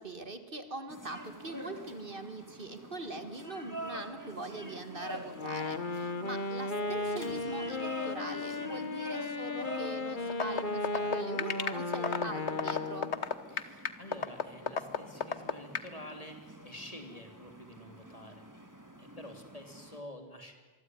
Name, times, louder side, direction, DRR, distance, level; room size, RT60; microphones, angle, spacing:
voice 1, 0.0-13.1, right 2 dB, 55° right, 8 dB, 2.2 m, -42 dB
sound 1, 0.9-20.0, right 1 dB, 15° right, 2.4 m, -47 dB
Wind instrument woodwind instrument, 5.3-13.3, left 3 dB, 50° left, 1.5 m, -35 dB
sound 2, 10.3-15.9, left 6 dB, 90° left, 1.5 m, -31 dB
voice 2, 13.5-18.5 19.0-20.5, left 1 dB, 35° left, 5 dB, 3.6 m, -48 dB
25.5 x 23.5 x 9.6 m, 1.3 s
omnidirectional pair, 1.1 m